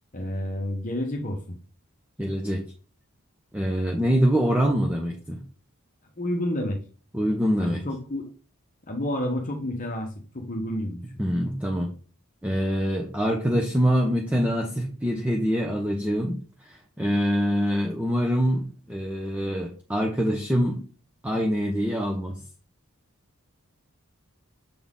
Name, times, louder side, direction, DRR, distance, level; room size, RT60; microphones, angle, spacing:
voice 1, 0.1-1.6 6.2-6.8 7.6-8.2 8.9-11.0, left 1 dB, 35° left, 2 dB, 0.9 m, -30 dB
voice 2, 2.2-2.6 3.5-5.4 7.1-7.8 11.2-11.9 12.4-16.4 16.6-20.8 21.2-22.4, equal, 5° right, 1 dB, 0.7 m, -25 dB
6.9 x 4.3 x 3.7 m, 0.38 s
head